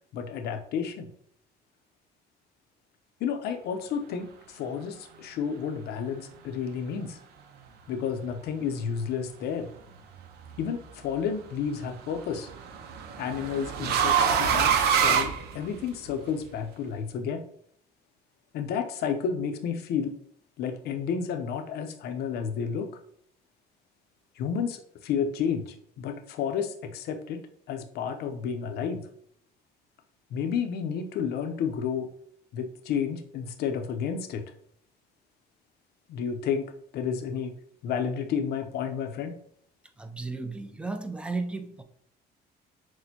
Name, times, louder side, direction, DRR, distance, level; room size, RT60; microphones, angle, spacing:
voice 1, 0.1-1.1 3.2-7.2 7.9-9.7 10.6-12.5 13.2-17.4 18.5-20.2 20.6-22.9 24.4-27.4 27.7-29.1 30.3-32.1 32.5-34.4 36.1-37.6 37.8-39.4, left 7 dB, 70° left, 7 dB, 0.6 m, -31 dB
sound 1, 10.2-10.7 12.1-16.1, right 7 dB, 70° right, 0.6 m, -25 dB
voice 2, 40.0-41.8, right 3 dB, 5° right, 7 dB, 0.4 m, -34 dB
6.0 x 2.1 x 2.8 m, 0.64 s
cardioid pair, 110°, 17 cm